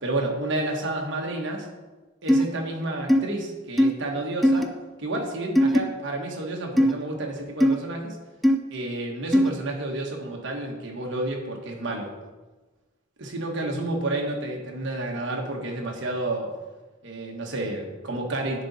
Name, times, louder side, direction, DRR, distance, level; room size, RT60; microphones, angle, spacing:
voice 1, 0.0-1.7 2.2-4.7 5.0-8.2 8.7-12.1 13.2-16.5 17.0-18.6, right 2 dB, 60° right, 0 dB, 1.3 m, -30 dB
sound 1, 2.3-2.5 3.1-3.2 3.8-3.9 4.4-4.6 5.6-5.8 6.8-6.9 7.6-7.8 8.4-8.6 9.3-9.5, equal, ahead, 0.4 m, -18 dB
10.0 x 4.0 x 4.1 m, 1.2 s
head